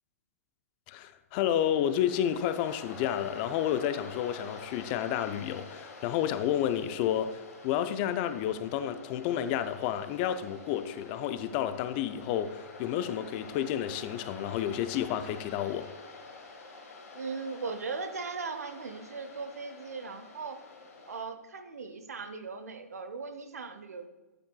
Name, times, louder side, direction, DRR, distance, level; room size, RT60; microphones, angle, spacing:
voice 1, 0.9-15.9, left 10 dB, 40° left, 11 dB, 0.5 m, -30 dB
Waves surf, 1.4-21.2, left 3 dB, 70° left, 1.8 m, -48 dB
voice 2, 17.1-20.6 21.1-24.1, right 4 dB, 75° right, 9 dB, 0.7 m, -38 dB
9.0 x 7.1 x 2.3 m, 1.1 s
figure-of-eight pair, 115°, 8 cm